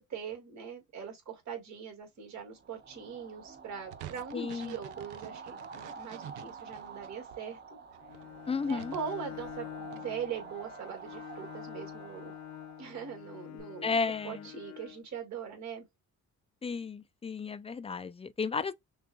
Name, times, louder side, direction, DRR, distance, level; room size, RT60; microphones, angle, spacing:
voice 1, 0.0-7.6 8.7-12.3 12.8-15.9, right 7 dB, 65° right, 2.1 m, -41 dB
sound 1, 2.5-13.6, right 5 dB, 35° right, 0.9 m, -48 dB
sound 2, 3.9-7.4 7.9-10.0, right 11 dB, 85° right, 0.6 m, -49 dB
voice 2, 4.3-4.7 8.5-8.9 13.8-14.4 16.6-18.7, left 5 dB, 20° left, 0.4 m, -33 dB
Bowed string instrument, 8.0-15.0, left 15 dB, 65° left, 0.6 m, -47 dB
5.9 x 2.5 x 2.2 m
cardioid pair, 90°, 30 cm